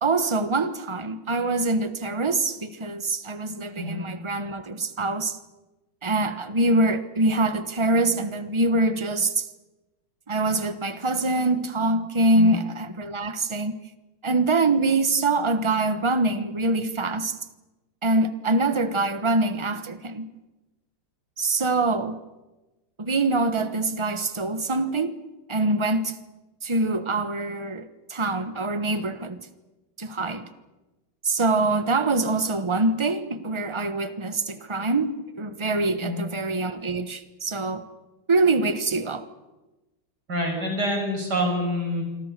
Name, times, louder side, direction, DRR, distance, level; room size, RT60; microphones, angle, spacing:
voice 1, 0.0-5.4 6.0-9.5 10.3-13.7 14.2-17.4 18.0-20.3 21.4-22.2 23.0-25.1 25.5-26.1 26.6-29.4 30.0-30.5 31.2-37.8 38.3-39.2, right 2 dB, 20° right, 0.7 m, -24 dB
voice 2, 40.3-42.0, equal, 45° right, 7.4 m, -26 dB
26.5 x 24.5 x 6.8 m
omnidirectional pair, 2.4 m